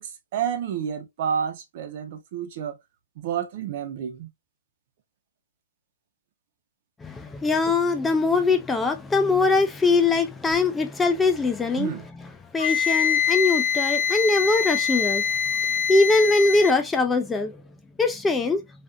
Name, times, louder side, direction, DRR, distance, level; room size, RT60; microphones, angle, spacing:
voice 1, 0.0-2.8 3.2-4.3 11.8-12.0, right 8 dB, 45° right, 0.7 m, -30 dB
voice 2, 7.0-12.3 12.5-15.2 15.9-17.6 18.0-18.6, left 3 dB, 10° left, 0.4 m, -22 dB
Wind instrument woodwind instrument, 12.6-16.8, left 7 dB, 50° left, 0.8 m, -24 dB
2.5 x 2.4 x 2.4 m
hypercardioid pair, 150°, 0 cm